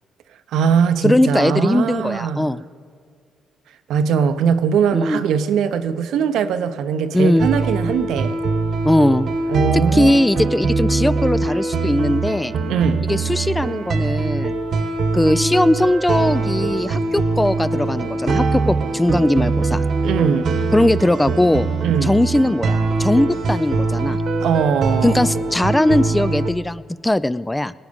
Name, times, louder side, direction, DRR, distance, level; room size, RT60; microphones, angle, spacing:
voice 1, 0.5-2.5 3.9-8.4 9.5-10.6 12.7-13.1 20.0-20.5 21.8-22.1 24.4-25.3, right 7 dB, 80° right, 0.7 m, -20 dB
voice 2, 1.0-2.6 4.9-5.2 7.1-7.5 8.8-9.3 9.9-12.5 13.1-14.5 15.1-19.8 20.7-21.7 22.0-24.2 25.0-27.7, left 1 dB, 10° left, 0.3 m, -19 dB
sound 1, 7.4-26.5, right 3 dB, 60° right, 1.0 m, -22 dB
19.0 x 9.5 x 5.2 m
cardioid pair, 90°, 0 cm